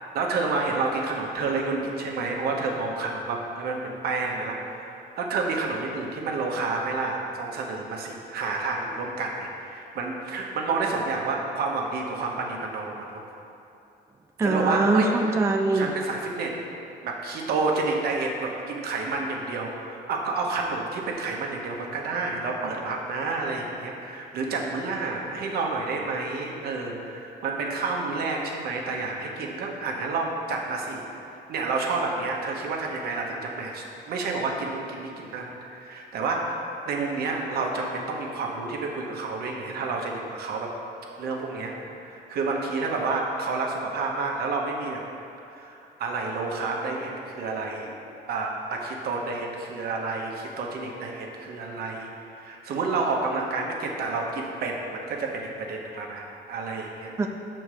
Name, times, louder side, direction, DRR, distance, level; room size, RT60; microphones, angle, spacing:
voice 1, 0.1-13.2 14.4-15.1 15.7-16.5 17.0-31.0 31.3-40.7 41.2-41.7 42.0-45.0 45.5-47.9 48.3-57.1, right 3 dB, 65° right, 0 dB, 1.1 m, -29 dB
voice 2, 14.4-15.9 57.2-57.3, right 3 dB, 15° right, 3 dB, 0.4 m, -22 dB
6.5 x 4.4 x 6.2 m, 2.7 s
cardioid pair, 110°, 17 cm